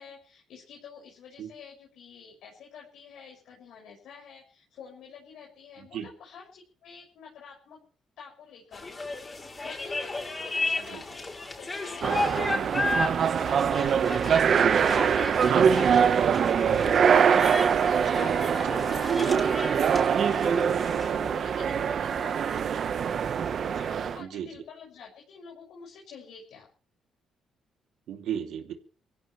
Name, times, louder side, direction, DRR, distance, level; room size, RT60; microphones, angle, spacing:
voice 1, 0.0-7.8 8.2-11.3 11.6-22.8 23.5-26.7, left 6 dB, 75° left, -1 dB, 6.6 m, -48 dB
sound 1, 8.7-21.1, left 2 dB, 25° left, 6.2 m, -34 dB
sound 2, 12.0-24.2, right 7 dB, 55° right, 1.3 m, -23 dB
voice 2, 15.5-15.8 18.4-18.8 24.2-24.5 28.1-28.7, right 9 dB, 80° right, 5 dB, 2.9 m, -33 dB
25.0 x 16.0 x 3.4 m, 0.41 s
cardioid pair, 90°, 0 cm